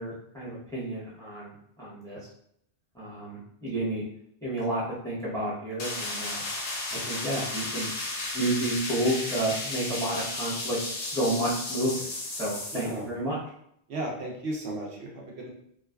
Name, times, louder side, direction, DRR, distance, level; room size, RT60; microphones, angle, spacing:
voice 1, 0.0-2.2 2.9-4.0 4.4-6.4 6.9-7.9 8.3-12.0 12.3-13.4, right 1 dB, 5° left, -9 dB, 0.7 m, -31 dB
sound 1, 5.8-13.0, left 2 dB, 50° left, 0.5 m, -34 dB
voice 2, 12.7-13.1 13.9-15.5, right 2 dB, 75° right, -2 dB, 0.9 m, -34 dB
2.4 x 2.3 x 2.2 m, 0.72 s
omnidirectional pair, 1.1 m